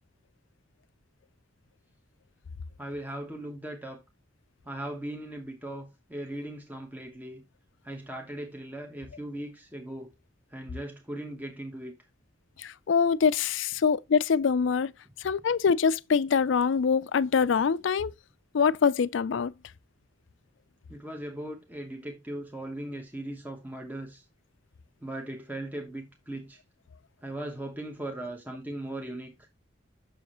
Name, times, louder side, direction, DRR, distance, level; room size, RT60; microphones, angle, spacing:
voice 1, 2.8-4.0 4.6-7.4 7.8-10.1 10.5-11.9 20.9-24.2 25.0-26.6 27.2-29.3, right 1 dB, 10° right, 1.0 m, -38 dB
voice 2, 12.6-14.9 15.2-18.1 18.5-19.5, left 6 dB, 85° left, 0.4 m, -24 dB
7.0 x 6.3 x 3.0 m
head